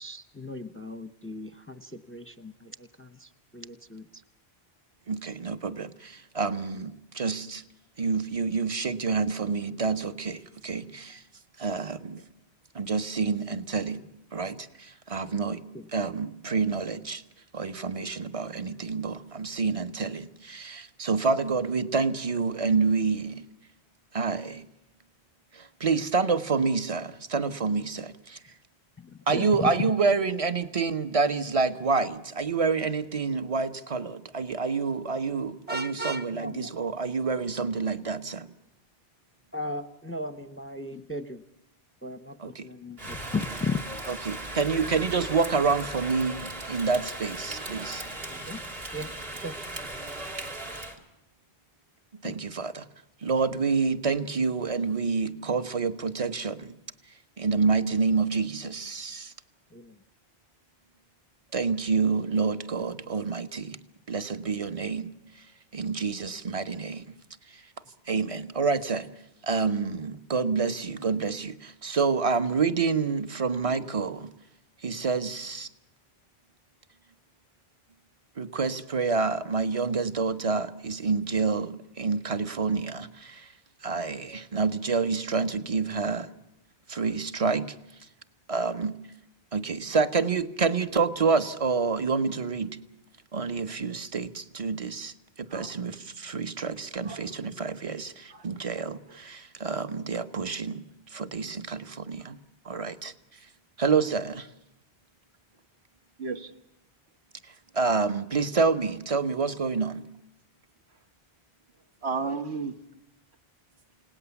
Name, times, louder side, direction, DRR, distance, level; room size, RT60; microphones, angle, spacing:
voice 1, 0.0-4.2 12.2-12.3 15.7-15.9 29.0-29.7 36.3-36.7 39.5-41.4 42.0-43.8 48.3-48.6 48.9-49.6 52.2-52.4 59.7-60.0 68.1-68.4 73.0-73.1, left 3 dB, 15° left, 0.7 m, -37 dB
voice 2, 5.1-7.6 8.0-11.2 11.6-12.2 12.7-14.0 14.3-15.6 15.9-17.2 17.5-23.4 24.1-24.7 25.5-28.4 29.3-38.5 42.4-42.6 44.3-48.0 52.2-52.9 53.2-56.7 57.4-59.3 61.5-63.8 64.1-65.1 65.4-65.5 65.7-67.1 67.5-67.6 68.1-69.1 69.4-74.3 74.8-75.7 78.4-83.5 83.8-86.3 86.9-87.7 88.5-88.9 89.5-92.8 93.3-100.8 101.1-102.4 102.6-103.1 103.8-104.5 107.7-110.1, right 4 dB, 35° right, 1.1 m, -28 dB
Vehicle horn car horn honking, 35.7-36.3, right 2 dB, 10° right, 1.0 m, -33 dB
Rain, 43.0-51.0, right 1 dB, 65° right, 3.1 m, -37 dB
voice 3, 97.0-97.7 98.3-98.5 106.2-106.5 112.0-112.8, right 4 dB, 80° right, 1.6 m, -33 dB
29.0 x 18.0 x 7.1 m
omnidirectional pair, 1.1 m